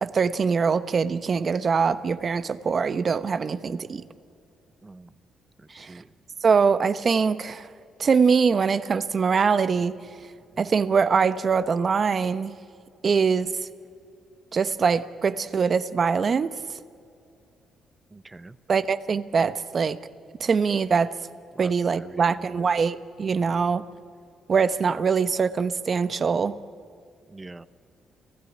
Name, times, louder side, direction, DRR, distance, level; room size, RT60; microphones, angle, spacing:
voice 1, 0.0-4.0 5.8-5.9 6.4-7.7 8.0-10.0 10.6-12.5 13.0-13.5 14.5-16.5 18.7-20.0 20.4-21.1 21.6-23.8 24.5-26.6, right 5 dB, 45° right, 14 dB, 1.0 m, -23 dB
voice 2, 4.8-5.1 5.6-6.1 18.1-18.6 21.5-22.7 27.3-27.7, right 2 dB, 20° right, 15 dB, 0.9 m, -44 dB
29.5 x 15.5 x 10.0 m, 2.5 s
cardioid pair, 90°, 0 cm